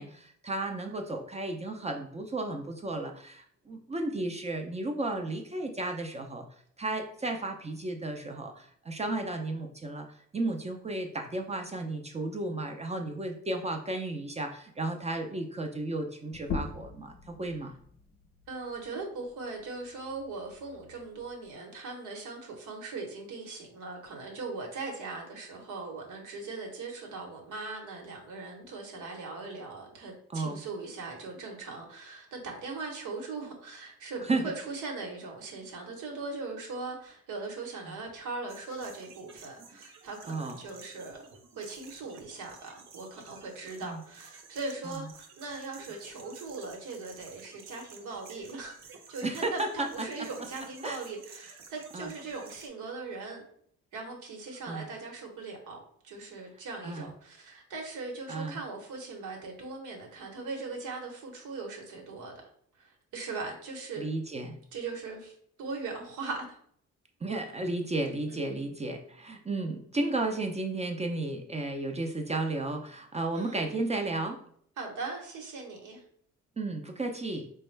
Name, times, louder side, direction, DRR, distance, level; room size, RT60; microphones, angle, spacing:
voice 1, 0.0-6.5 6.8-10.1 10.3-17.8 30.3-30.6 34.2-34.5 37.9-38.0 40.3-40.6 43.8-44.0 44.8-45.0 49.2-50.1 50.8-51.0 51.9-52.1 54.7-54.8 56.8-57.1 58.3-58.6 64.0-64.6 67.2-74.4 76.6-77.5, right 2 dB, 20° right, 4 dB, 0.4 m, -33 dB
sound 1, 16.3-21.5, left 4 dB, 50° left, 0.5 m, -42 dB
voice 2, 18.5-41.3 41.5-53.4 53.9-62.4 62.8-64.1 64.7-66.6 68.3-68.6 73.3-73.7 74.8-76.0, right 3 dB, 85° right, 1 dB, 1.1 m, -40 dB
sound 2, 38.5-52.7, right 5 dB, 60° right, 0.8 m, -52 dB
4.1 x 2.2 x 3.2 m, 0.63 s
cardioid pair, 90°, 30 cm